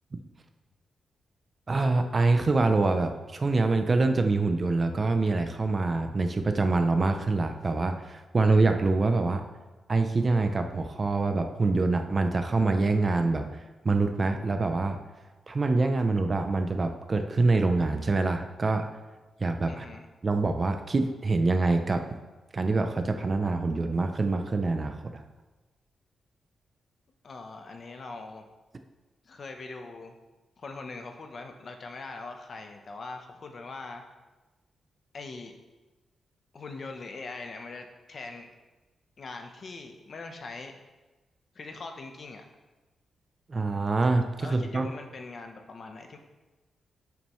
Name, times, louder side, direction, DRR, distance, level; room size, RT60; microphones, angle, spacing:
voice 1, 1.7-9.4 9.9-13.5 13.8-15.0 15.5-18.9 19.4-19.9 20.2-22.0 22.5-25.2 43.5-44.9, right 3 dB, 25° right, 7 dB, 0.5 m, -25 dB
voice 2, 19.7-20.1 27.2-28.5 29.2-30.1 30.6-34.0 35.1-35.5 36.5-38.5 39.2-40.7 41.5-42.4 44.4-46.2, left 3 dB, 40° left, 5 dB, 0.8 m, -42 dB
11.0 x 7.2 x 3.1 m, 1.2 s
wide cardioid pair, 175°, 0 cm